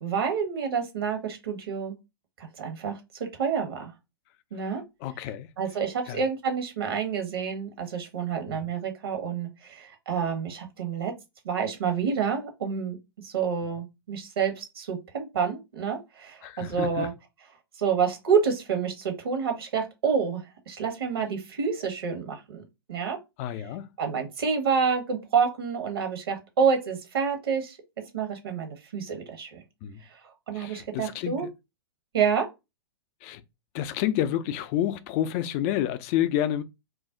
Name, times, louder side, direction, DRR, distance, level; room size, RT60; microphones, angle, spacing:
voice 1, 0.0-2.0 2.4-3.0 3.4-3.9 4.5-4.8 5.6-11.1 11.4-13.0 13.2-17.1 17.8-22.6 22.9-23.2 24.0-27.8 28.1-29.6 30.5-31.5 32.1-32.4, right 6 dB, 70° right, 1.0 m, -28 dB
voice 2, 5.0-5.5 6.1-6.2 8.5-8.7 16.4-17.1 23.4-23.9 29.8-30.0 30.5-31.5 33.2-33.4 33.7-36.6, left 11 dB, 40° left, 0.4 m, -29 dB
2.5 x 2.0 x 3.5 m
figure-of-eight pair, 110°, 13 cm